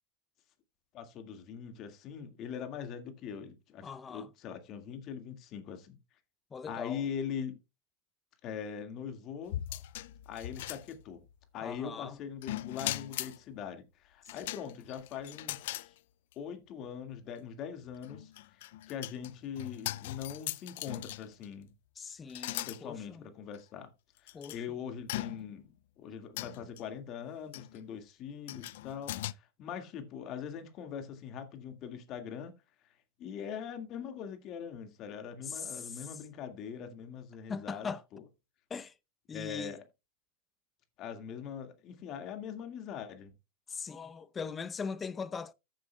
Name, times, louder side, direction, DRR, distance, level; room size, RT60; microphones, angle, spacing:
voice 1, 0.9-6.0 6.7-7.6 8.4-9.6 10.3-11.2 11.5-15.9 16.4-21.7 22.7-23.9 24.2-25.7 26.0-32.5 33.2-38.2 39.3-39.8 41.0-43.3, left 7 dB, 45° left, 1.8 m, -42 dB
voice 2, 3.8-4.3 6.5-7.1 11.6-12.2 22.0-23.3 24.3-24.6 35.4-36.2 37.5-38.0 38.7-38.9 39.3-39.8 43.7-45.5, left 5 dB, 20° left, 0.7 m, -40 dB
sound 1, 9.5-11.3 12.4-13.4 14.3-15.9 16.3-16.4 17.9-21.5 22.3-22.8 23.5-23.6 24.3-24.6 25.1-25.7 26.4-26.8 27.5-27.8 28.5-29.3, left 15 dB, 70° left, 0.4 m, -40 dB
14.5 x 7.6 x 2.2 m
hypercardioid pair, 110°, 0 cm